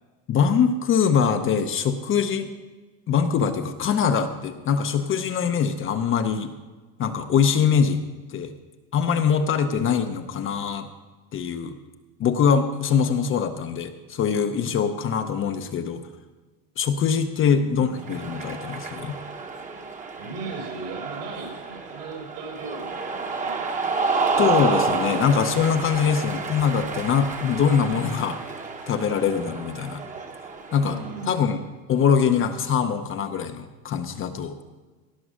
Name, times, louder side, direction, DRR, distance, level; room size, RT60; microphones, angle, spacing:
voice 1, 0.3-2.5 3.1-6.5 7.0-8.0 8.3-8.5 8.9-10.9 11.3-11.8 12.2-16.0 16.8-19.2 24.4-28.4 28.9-30.0 30.7-31.0 31.3-31.6 31.9-34.6, left 7 dB, 25° left, 7 dB, 0.6 m, -23 dB
voice 2, 17.4-18.1 20.2-24.0 25.9-26.2 30.8-31.6, right 3 dB, 80° right, 2 dB, 4.0 m, -38 dB
Cheering, 18.0-31.4, right 4 dB, 15° right, 0.9 m, -30 dB
17.5 x 6.1 x 6.2 m, 1.3 s
supercardioid pair, 140°, 48 cm